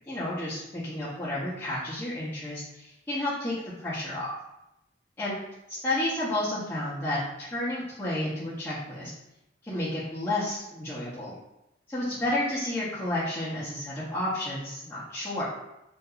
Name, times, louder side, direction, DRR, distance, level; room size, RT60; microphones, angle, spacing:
voice 1, 0.1-4.3 5.2-5.3 5.7-9.1 9.7-11.3 11.9-15.4, left 1 dB, 10° left, -11 dB, 0.6 m, -31 dB
2.8 x 2.4 x 2.4 m, 0.87 s
head